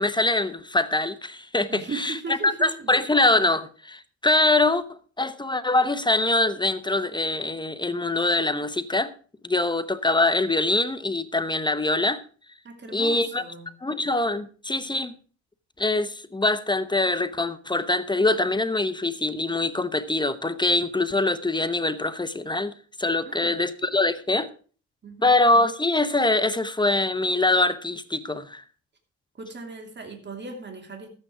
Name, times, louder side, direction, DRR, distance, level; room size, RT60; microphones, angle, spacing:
voice 1, 0.0-2.2 2.4-9.1 9.4-12.2 12.9-13.4 13.8-15.1 15.8-22.7 23.0-24.5 25.2-28.6, left 2 dB, 15° left, 0.8 m, -23 dB
voice 2, 1.7-2.9 12.6-13.7 23.2-23.6 25.0-25.4 29.4-31.1, right 4 dB, 35° right, 2.8 m, -37 dB
13.0 x 8.8 x 4.8 m
cardioid pair, 90°, 30 cm